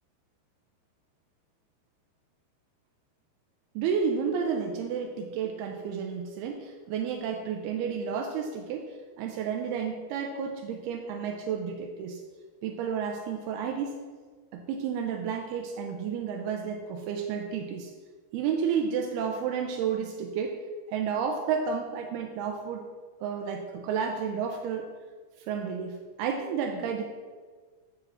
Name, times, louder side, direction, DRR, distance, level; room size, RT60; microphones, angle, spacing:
voice 1, 3.8-12.2 12.6-14.0 14.5-17.9 18.3-20.6 20.9-22.8 23.2-24.9 25.5-27.0, right 6 dB, 80° right, 2 dB, 2.5 m, -31 dB
7.4 x 5.1 x 7.4 m, 1.5 s
omnidirectional pair, 5.0 m